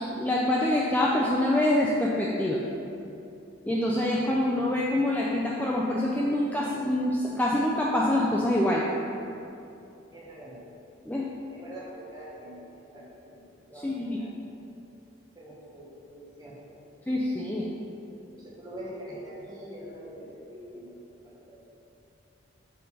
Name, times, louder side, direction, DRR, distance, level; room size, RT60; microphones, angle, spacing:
voice 1, 0.1-2.6 3.7-8.8 11.1-11.3 13.8-14.2 17.1-17.6, left 1 dB, 10° left, -4 dB, 0.4 m, -25 dB
voice 2, 10.1-10.6 11.5-12.6 12.9-13.4 13.7-14.3 15.3-16.5 18.3-20.9 21.2-21.6, equal, 20° right, -6 dB, 1.3 m, -44 dB
6.4 x 4.0 x 5.4 m, 2.7 s
head